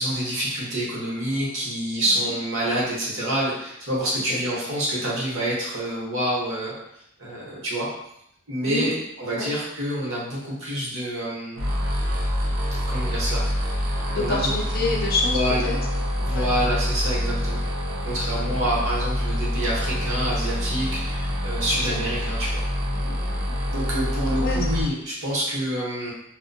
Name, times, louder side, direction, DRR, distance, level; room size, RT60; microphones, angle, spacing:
voice 1, 0.0-6.7 7.2-7.9 8.5-8.9 9.2-11.7 12.9-13.4 14.1-14.5 15.3-15.6 16.2-17.6 18.0-22.6 23.7-26.1, right 1 dB, 60° right, -5 dB, 0.9 m, -27 dB
voice 2, 2.0-2.3 4.1-4.6 8.6-9.0 9.4-9.5 14.1-15.4 15.6-15.8 16.3-16.5 18.5-18.9 21.7-22.2 22.9-23.6 24.4-24.6, left 3 dB, 45° left, -1 dB, 0.4 m, -29 dB
sound 1, 11.6-24.8, equal, 75° right, 0.5 m, -26 dB
2.6 x 2.1 x 2.6 m, 0.75 s
head